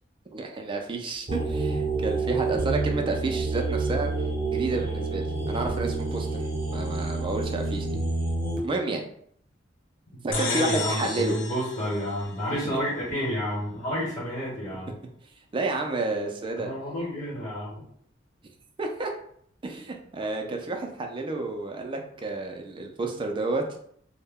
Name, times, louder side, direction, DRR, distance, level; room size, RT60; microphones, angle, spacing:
voice 1, 0.3-4.1 4.5-6.4 6.7-8.0 8.6-9.0 10.2-11.4 12.6-12.7 15.5-16.7 18.8-19.1 19.6-23.6, right 3 dB, 25° right, 3 dB, 0.4 m, -30 dB
sound 1, 1.3-8.6, right 3 dB, 50° right, 0.8 m, -28 dB
sound 2, 10.3-12.9, left 4 dB, 80° left, 0.5 m, -34 dB
voice 2, 10.3-14.9 16.6-17.9, equal, 40° left, -6 dB, 1.0 m, -30 dB
2.1 x 2.0 x 3.4 m, 0.65 s
head